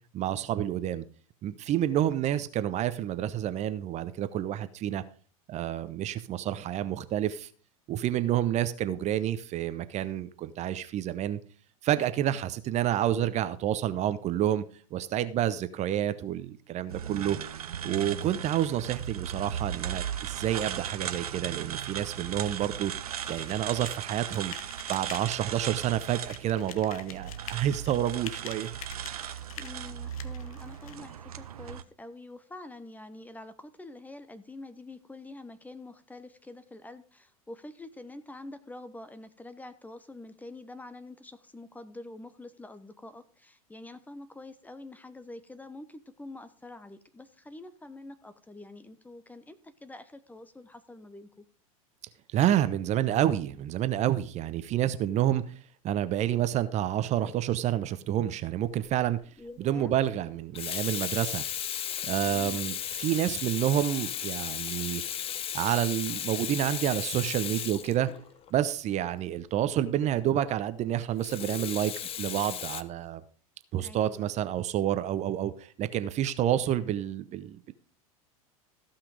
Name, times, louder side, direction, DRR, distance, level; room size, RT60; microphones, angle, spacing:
voice 1, 0.1-1.0 1.4-5.0 5.5-7.5 7.9-11.4 11.8-14.6 14.9-17.4 17.8-22.9 23.3-24.5 24.9-28.7 52.3-55.4 55.8-59.2 59.6-61.4 62.0-65.0 65.5-68.1 68.5-71.9 72.2-73.2 73.7-77.7, right 11 dB, 40° right, 0.8 m, -29 dB
sound 1, 16.9-31.8, right 9 dB, 80° right, 0.9 m, -37 dB
sound 2, 23.2-31.0, left 9 dB, 70° left, 1.2 m, -46 dB
voice 2, 29.6-51.5 59.4-59.9 62.3-62.7 73.8-74.3, left 2 dB, 10° left, 0.9 m, -46 dB
Water tap faucet / Sink (filling or washing), 58.8-59.0 60.3-68.5 71.2-72.8, left 9 dB, 30° left, 0.8 m, -35 dB
15.0 x 5.8 x 5.1 m
hypercardioid pair, 90°, 19 cm